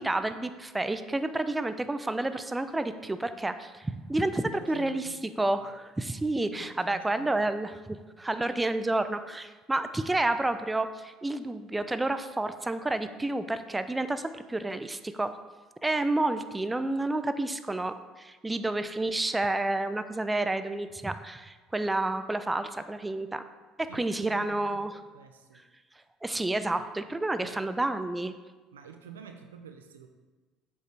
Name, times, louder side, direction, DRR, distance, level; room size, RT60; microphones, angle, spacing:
voice 1, 0.0-5.1 5.4-15.3 15.8-23.4 23.8-24.9 26.2-28.3, right 2 dB, 15° right, 10 dB, 0.4 m, -30 dB
voice 2, 4.3-5.7 6.5-7.5 23.9-24.8 25.1-25.6 26.7-26.8 27.4-27.6 28.7-30.1, right 6 dB, 90° right, 6 dB, 0.5 m, -49 dB
7.6 x 5.3 x 3.3 m, 1.2 s
hypercardioid pair, 65°, 0 cm